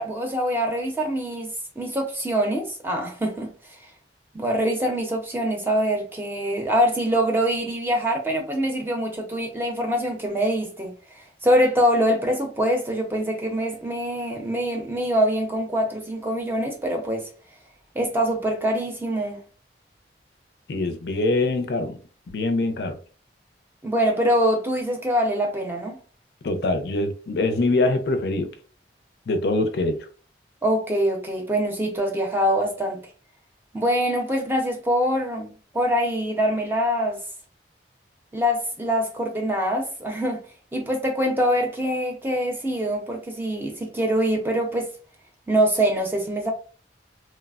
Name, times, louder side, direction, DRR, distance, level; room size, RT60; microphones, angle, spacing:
voice 1, 0.0-3.5 4.3-10.9 11.4-17.3 17.9-19.4 23.8-26.0 30.6-33.0 33.7-37.2 38.3-40.4 40.7-44.9 45.5-46.5, equal, 10° right, 0.6 m, -24 dB
voice 2, 20.7-22.0 22.3-23.0 26.4-28.5 29.3-30.1, left 2 dB, 65° left, 0.4 m, -24 dB
3.2 x 2.0 x 2.3 m
head